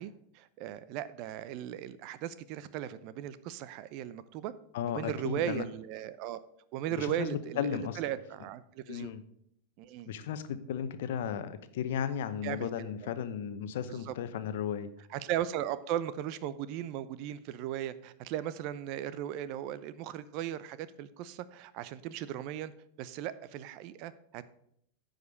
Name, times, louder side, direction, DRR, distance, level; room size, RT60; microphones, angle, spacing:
voice 1, 0.0-4.5 4.8-6.4 6.7-9.1 9.8-10.1 12.4-13.1 13.9-14.1 15.1-22.7 23.0-24.4, right 11 dB, 55° right, 15 dB, 0.6 m, -37 dB
voice 2, 4.7-5.6 7.0-8.0 8.9-9.2 10.1-14.9, left 8 dB, 70° left, 12 dB, 0.8 m, -35 dB
9.4 x 5.2 x 6.4 m, 0.71 s
hypercardioid pair, 95°, 0 cm